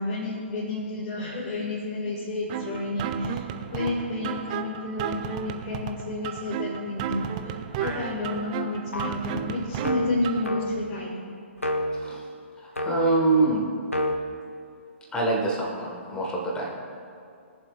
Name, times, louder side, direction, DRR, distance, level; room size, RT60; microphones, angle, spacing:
voice 1, 0.0-3.4 3.7-7.6 7.8-11.2, left 2 dB, 35° left, -6 dB, 1.9 m, -31 dB
sound 1, 2.5-10.5, right 9 dB, 35° right, 0.5 m, -33 dB
sound 2, 7.8-8.3 8.9-9.3 9.8-11.0 11.6-12.1 12.8-13.2 13.9-14.2, left 1 dB, 90° left, 1.0 m, -30 dB
voice 2, 11.9-12.2 12.6-13.7 15.1-16.7, right 3 dB, 10° left, -1 dB, 1.5 m, -25 dB
20.0 x 7.3 x 2.5 m, 2.4 s
figure-of-eight pair, 125°, 7 cm